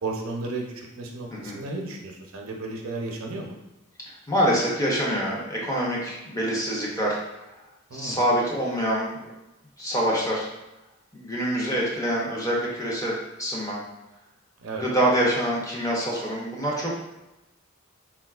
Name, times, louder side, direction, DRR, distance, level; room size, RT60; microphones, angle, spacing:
voice 1, 0.0-3.6 7.9-8.2 14.6-14.9, right 3 dB, 90° right, 1 dB, 0.5 m, -33 dB
voice 2, 4.3-7.2 7.9-9.3 9.8-10.5 11.1-13.1 13.4-13.8 14.8-16.9, equal, 15° left, -4 dB, 0.6 m, -25 dB
3.8 x 2.3 x 2.3 m, 0.99 s
head